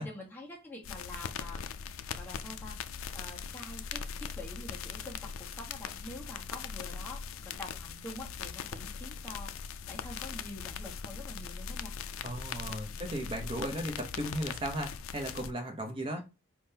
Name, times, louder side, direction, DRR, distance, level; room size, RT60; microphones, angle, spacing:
voice 1, 0.0-1.6 2.1-2.8 3.1-11.9 16.1-16.2, left 1 dB, 10° left, 1.3 m, -46 dB
sound 1, 0.8-15.5, left 6 dB, 70° left, 0.4 m, -40 dB
voice 2, 12.2-16.2, right 1 dB, 25° right, 0.8 m, -36 dB
4.5 x 3.6 x 2.8 m
head